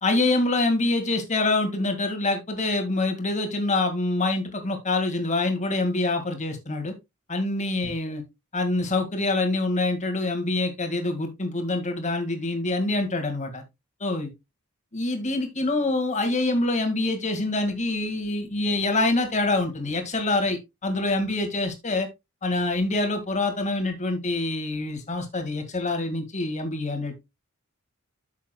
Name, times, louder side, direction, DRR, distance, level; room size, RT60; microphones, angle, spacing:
voice 1, 0.0-6.9 7.3-8.2 8.5-13.6 14.0-14.3 14.9-22.1 22.4-27.2, left 2 dB, 35° left, 1.9 m, -25 dB
10.5 x 7.3 x 2.2 m
head